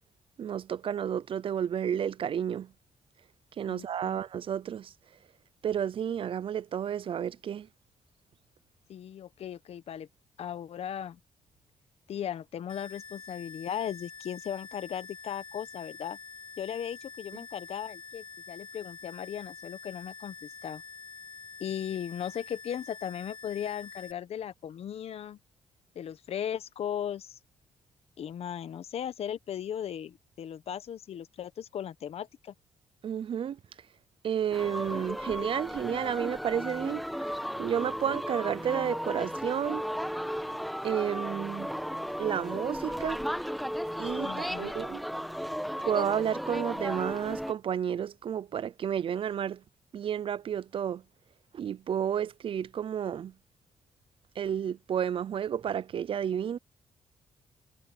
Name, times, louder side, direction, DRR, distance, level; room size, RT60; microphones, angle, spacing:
voice 1, 0.4-2.7 3.6-4.9 5.6-7.7 33.0-33.6 34.2-37.0 37.6-39.9 40.8-41.7 42.2-43.2 44.0-45.0 45.9-49.6 49.9-51.0 51.5-53.3 54.4-56.6, right 9 dB, 50° right, 0.5 m, -31 dB
voice 2, 3.7-4.2 8.9-10.1 10.4-11.2 12.1-16.2 16.6-20.8 21.6-25.4 25.9-27.4 28.2-32.5 44.2-44.7, left 9 dB, 60° left, 1.2 m, -37 dB
sound 1, 12.7-24.1, left 5 dB, 45° left, 1.3 m, -47 dB
sound 2, 34.5-47.5, equal, ahead, 1.4 m, -35 dB
cardioid pair, 100°, 11 cm